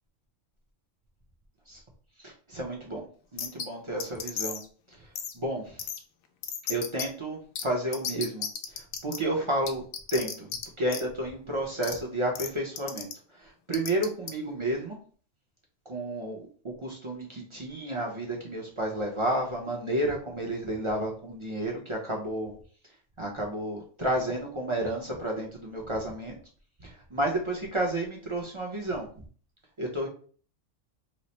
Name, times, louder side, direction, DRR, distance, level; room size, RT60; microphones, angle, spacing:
voice 1, 2.2-3.1 3.3-4.6 4.9-5.1 5.3-5.8 6.7-10.5 10.8-13.1 13.3-15.0 15.9-16.5 16.8-22.5 23.2-26.4 26.8-29.2 29.8-30.1, right 1 dB, 35° right, -1 dB, 0.5 m, -31 dB
sound 1, 3.4-3.7 4.0-4.7 5.2-5.3 5.8-6.0 6.4-7.1 7.6-7.7 7.9-9.2 9.7-10.6 10.9-11.0 11.8-11.9 12.4-12.5 12.8-13.1 13.7-14.3, left 8 dB, 85° left, 1.0 m, -33 dB
3.1 x 2.0 x 4.1 m, 0.43 s
omnidirectional pair, 1.4 m